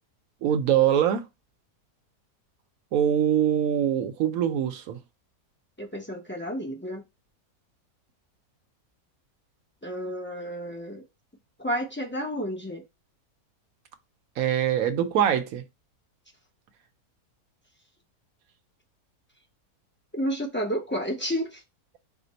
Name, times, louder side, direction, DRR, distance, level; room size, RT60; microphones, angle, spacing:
voice 1, 0.4-1.2 2.9-5.0 14.4-15.6, right 9 dB, 70° right, 1.0 m, -23 dB
voice 2, 5.8-7.0 9.8-11.0 11.6-12.8 20.1-21.6, equal, 20° left, 0.3 m, -31 dB
5.0 x 2.1 x 3.9 m
omnidirectional pair, 1.7 m